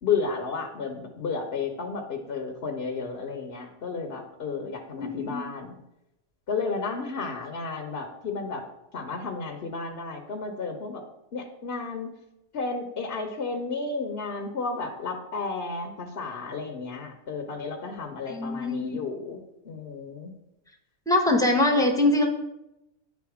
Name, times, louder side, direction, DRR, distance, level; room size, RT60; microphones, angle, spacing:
voice 1, 0.0-5.8 6.5-8.6 8.9-11.0 11.3-12.1 12.5-19.4 19.6-20.3, left 4 dB, 50° left, 2 dB, 0.9 m, -32 dB
voice 2, 5.0-5.4 18.3-19.0 21.1-22.3, left 2 dB, 5° left, 1 dB, 0.8 m, -23 dB
9.4 x 3.7 x 4.8 m, 0.88 s
omnidirectional pair, 1.5 m